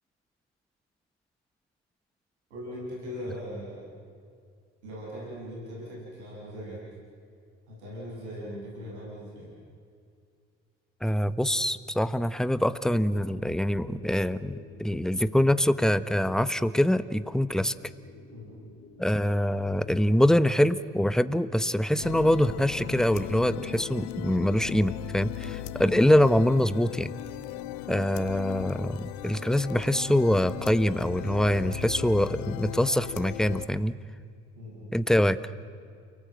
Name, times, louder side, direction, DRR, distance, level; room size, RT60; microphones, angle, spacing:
voice 1, 2.5-3.9 4.8-6.8 7.7-9.5 18.3-18.5 34.5-34.9, equal, 90° right, -5 dB, 8.0 m, -39 dB
voice 2, 11.0-17.7 19.0-27.1 27.9-33.9 34.9-35.4, equal, ahead, 14 dB, 1.1 m, -24 dB
sound 1, 12.9-28.5, left 5 dB, 40° left, 2.7 m, -52 dB
sound 2, 22.0-33.7, left 16 dB, 80° left, 0.7 m, -38 dB
29.5 x 18.5 x 7.9 m, 2.3 s
hypercardioid pair, 50°, 33 cm